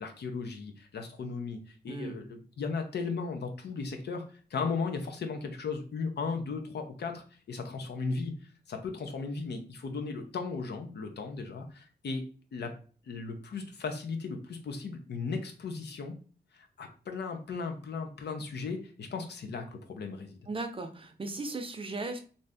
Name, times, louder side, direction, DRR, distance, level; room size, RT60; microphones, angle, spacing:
voice 1, 0.0-4.2 4.5-8.3 8.7-12.2 12.5-12.7 13.1-16.1 16.5-20.4, left 4 dB, 85° left, 5 dB, 0.6 m, -36 dB
voice 2, 1.9-2.2 20.5-22.2, right 3 dB, 30° right, 6 dB, 0.6 m, -37 dB
2.6 x 2.6 x 3.4 m, 0.40 s
cardioid pair, 75°, 17 cm